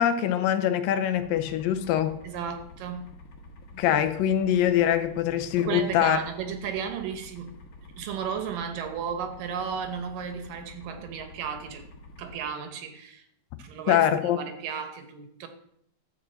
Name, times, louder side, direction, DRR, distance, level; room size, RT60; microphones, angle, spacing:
voice 1, 0.0-2.2 3.7-6.2 13.9-14.4, left 10 dB, 85° left, 2.4 m, -23 dB
sound 1, 1.1-12.4, left 1 dB, 60° left, 2.7 m, -48 dB
voice 2, 2.2-3.1 5.6-7.5 7.8-11.9 12.2-13.3 13.6-15.5, right 7 dB, 75° right, 2.7 m, -34 dB
12.0 x 4.7 x 7.5 m
omnidirectional pair, 4.1 m